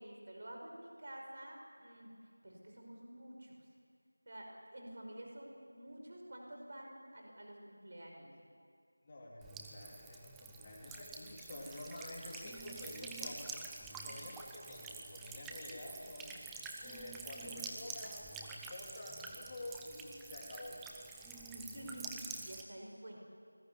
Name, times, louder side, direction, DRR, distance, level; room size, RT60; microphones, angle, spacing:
voice 1, 0.0-3.7 4.3-8.3 13.9-14.2 21.5-23.2, right 1 dB, 35° right, 1 dB, 5.5 m, -50 dB
voice 2, 9.0-13.5 13.9-16.4 16.8-20.8, left 1 dB, 15° left, -3 dB, 3.3 m, -49 dB
Buzz / Water tap faucet / Trickle dribble, 9.4-22.6, right 4 dB, 5° right, 0.6 m, -48 dB
27.5 x 20.5 x 9.7 m, 2.2 s
figure-of-eight pair, 180°, 0 cm